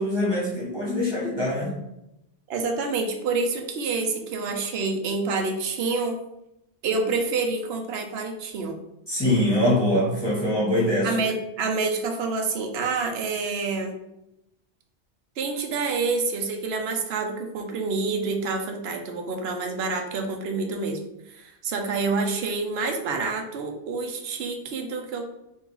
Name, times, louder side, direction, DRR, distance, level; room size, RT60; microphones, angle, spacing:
voice 1, 0.0-1.8 9.1-11.1, left 1 dB, 25° left, -6 dB, 1.2 m, -23 dB
voice 2, 2.5-6.2 6.8-8.8 11.0-14.0 15.4-21.0 21.3-25.2, right 4 dB, 70° right, 4 dB, 0.9 m, -27 dB
3.7 x 2.7 x 4.5 m, 0.86 s
omnidirectional pair, 1.1 m